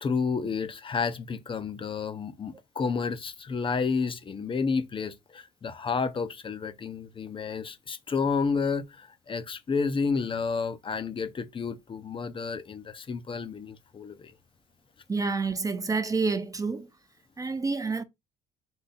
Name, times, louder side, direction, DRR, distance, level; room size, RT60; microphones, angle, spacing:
voice 1, 0.0-14.3, left 5 dB, 30° left, 0.6 m, -30 dB
voice 2, 15.1-16.9 17.4-18.0, right 4 dB, 20° right, 0.5 m, -28 dB
3.9 x 3.2 x 4.0 m
cardioid pair, 110°, 17 cm